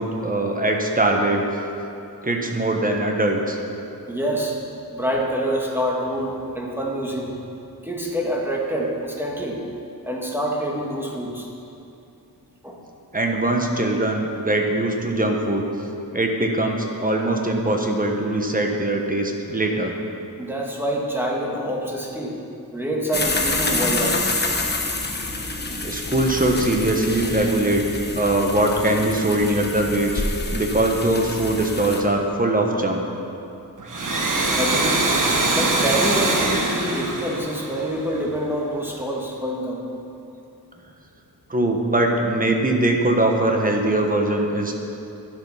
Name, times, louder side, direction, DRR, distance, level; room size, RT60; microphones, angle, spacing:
voice 1, 0.0-1.5 2.2-3.6 13.1-15.7 16.1-19.9 25.8-30.2 30.5-33.0 41.5-44.8, right 1 dB, 25° right, 2 dB, 1.3 m, -21 dB
voice 2, 4.1-4.6 4.9-7.3 7.8-9.6 10.0-11.5 12.6-12.8 20.4-22.4 22.7-24.2 34.5-35.0 35.5-39.8, equal, 5° right, -2 dB, 1.7 m, -26 dB
sound 1, 23.1-32.0, left 2 dB, 30° left, 1.1 m, -27 dB
Domestic sounds home sounds, 33.8-38.3, right 2 dB, 60° right, 1.4 m, -22 dB
12.0 x 7.6 x 5.7 m, 2.8 s
wide cardioid pair, 100°, 36 cm